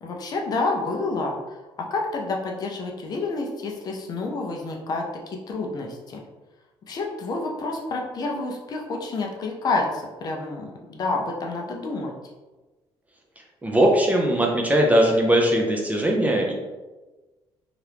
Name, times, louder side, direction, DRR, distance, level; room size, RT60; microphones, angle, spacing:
voice 1, 0.0-6.2 6.9-12.1, left 3 dB, 40° left, 0 dB, 0.5 m, -29 dB
voice 2, 13.6-16.5, right 1 dB, 15° right, 0 dB, 0.4 m, -20 dB
2.8 x 2.4 x 3.3 m, 1.2 s
cardioid pair, 155°, 10 cm